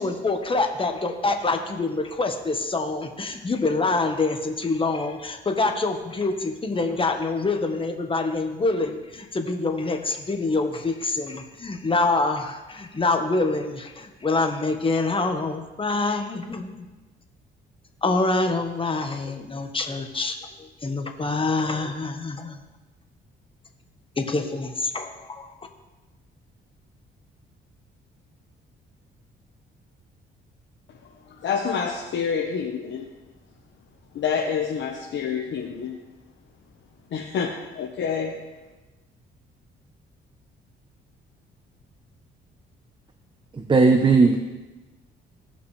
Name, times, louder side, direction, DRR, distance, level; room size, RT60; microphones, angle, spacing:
voice 1, 0.0-16.9 18.0-22.6 24.2-25.6, left 3 dB, 25° left, 5 dB, 1.2 m, -26 dB
voice 2, 31.4-33.0 34.1-36.0 37.1-38.3, left 6 dB, 65° left, 0 dB, 1.1 m, -27 dB
voice 3, 43.6-44.4, right 4 dB, 25° right, 5 dB, 0.8 m, -17 dB
17.0 x 5.8 x 3.3 m, 1.1 s
cardioid pair, 90°, 20 cm